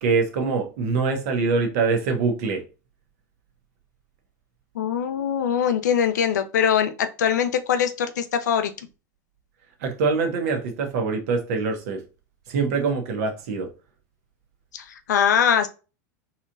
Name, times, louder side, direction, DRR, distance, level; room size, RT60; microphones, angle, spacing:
voice 1, 0.0-2.6 9.8-12.0 12.5-13.7, right 4 dB, 65° right, 1.2 m, -24 dB
voice 2, 4.7-8.7 14.7-15.7, left 8 dB, 85° left, 0.6 m, -22 dB
4.0 x 3.0 x 2.6 m
hypercardioid pair, 110°, 9 cm